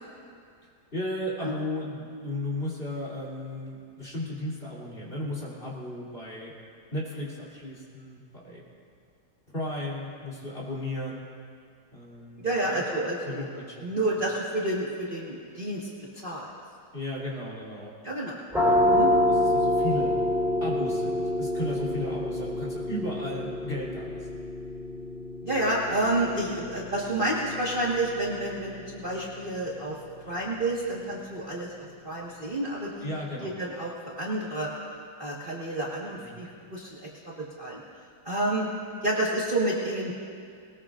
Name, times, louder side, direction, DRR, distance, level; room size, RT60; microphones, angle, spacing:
voice 1, 0.9-6.5 6.9-8.6 9.5-11.2 11.9-12.9 13.2-13.9 16.9-17.9 18.6-18.8 19.3-20.1 20.6-24.4 33.0-33.7 36.1-36.4, left 1 dB, 30° left, -6 dB, 3.3 m, -35 dB
voice 2, 12.4-13.5 13.8-15.9 16.2-16.5 18.0-18.4 18.9-19.1 25.4-30.0 30.3-33.1 33.4-33.9 34.1-34.7 35.2-37.8 38.2-38.7 39.0-40.1, right 1 dB, 30° right, -6 dB, 1.6 m, -29 dB
sound 1, 18.5-30.0, left 1 dB, ahead, 3.8 m, -28 dB
21.0 x 20.0 x 2.5 m, 2.3 s
omnidirectional pair, 2.0 m